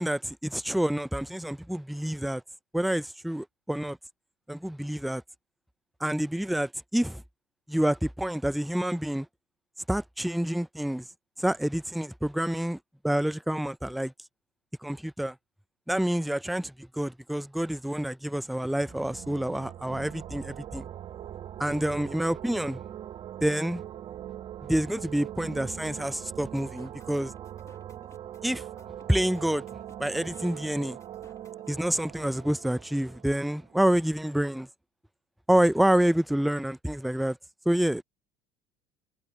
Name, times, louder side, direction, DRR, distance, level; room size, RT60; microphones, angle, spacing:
voice 1, 0.0-2.4 2.7-4.0 4.5-5.2 6.0-7.2 7.7-9.3 9.9-11.1 11.4-12.8 13.0-14.1 14.8-15.4 15.9-20.9 21.6-22.8 23.4-23.8 24.7-27.3 28.4-28.6 29.1-29.7 30.0-31.0 31.7-34.7 35.5-37.4 37.7-38.0, right 1 dB, ahead, 0.3 m, -28 dB
sound 1, 18.7-34.2, right 11 dB, 45° right, 1.0 m, -42 dB
sound 2, 26.6-31.8, left 5 dB, 25° left, 1.7 m, -60 dB
supercardioid pair, 85°, 12 cm